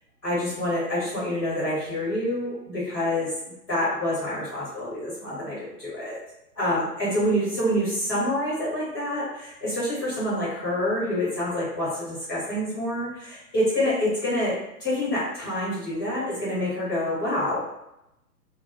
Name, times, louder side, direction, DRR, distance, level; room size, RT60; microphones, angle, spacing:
voice 1, 0.2-3.3 3.7-6.2 6.5-14.5 14.8-17.6, left 1 dB, ahead, -27 dB, 0.5 m, -27 dB
2.3 x 2.2 x 3.0 m, 0.86 s
figure-of-eight pair, 125°, 48 cm